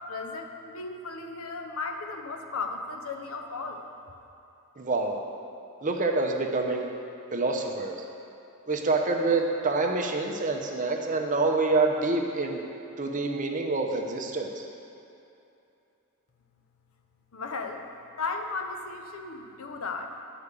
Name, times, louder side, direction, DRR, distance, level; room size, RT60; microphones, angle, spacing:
voice 1, 0.1-3.8 17.3-17.8 18.2-20.1, left 4 dB, 70° left, 4 dB, 0.8 m, -35 dB
voice 2, 4.8-5.2 5.8-6.9 7.3-7.9 8.7-12.6 13.0-14.6, right 3 dB, 35° right, 2 dB, 0.8 m, -27 dB
10.0 x 4.9 x 6.8 m, 2.8 s
head